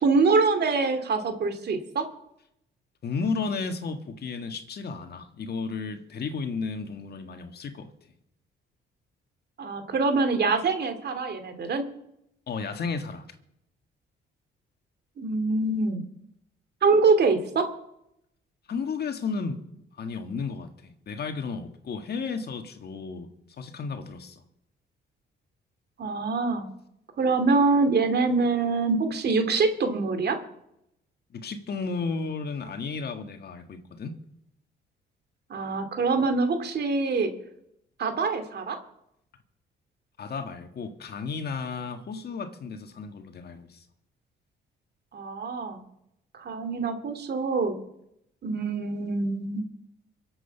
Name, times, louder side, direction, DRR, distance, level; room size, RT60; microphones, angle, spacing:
voice 1, 0.0-2.0 9.6-11.8 15.2-16.0 16.8-17.7 26.0-26.7 27.2-30.4 35.5-37.3 38.0-38.8 45.1-45.8 46.3-47.8 48.4-49.7, right 4 dB, 55° right, 8 dB, 2.5 m, -24 dB
voice 2, 3.0-7.9 12.5-13.2 18.7-19.6 20.0-23.3 23.6-24.4 31.3-34.1 40.2-43.8, left 4 dB, 55° left, 7 dB, 1.8 m, -33 dB
23.5 x 8.0 x 5.7 m, 0.79 s
cardioid pair, 90°, 20 cm